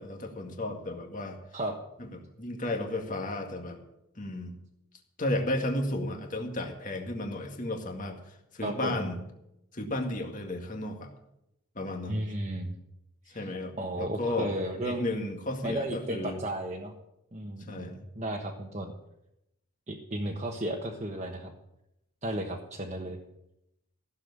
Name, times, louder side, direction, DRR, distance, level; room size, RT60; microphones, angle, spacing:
voice 1, 0.0-1.4 2.0-2.1 2.4-3.8 4.2-4.5 5.2-8.2 8.5-9.2 9.7-11.1 11.8-12.2 13.3-14.5 14.8-16.4 17.7-18.0, left 1 dB, 35° left, 3 dB, 2.0 m, -33 dB
voice 2, 8.6-9.0 12.1-12.7 13.2-13.5 13.8-15.0 15.6-16.9 17.3-18.9 19.9-21.5 22.2-23.2, right 1 dB, 30° right, 0 dB, 1.4 m, -34 dB
15.5 x 7.3 x 8.4 m, 0.84 s
head